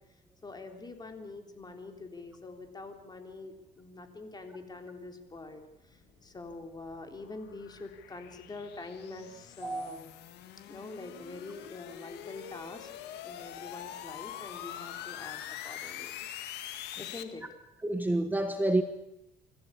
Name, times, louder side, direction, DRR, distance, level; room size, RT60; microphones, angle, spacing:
voice 1, 0.4-10.1 10.7-12.9 13.2-16.3 16.9-17.5, left 3 dB, 25° left, 5 dB, 3.6 m, -45 dB
sound 1, 5.9-17.2, left 11 dB, 80° left, 1.8 m, -44 dB
voice 2, 17.8-18.8, right 1 dB, 10° right, 7 dB, 1.4 m, -28 dB
25.5 x 15.0 x 8.6 m, 0.88 s
cardioid pair, 110°, 17 cm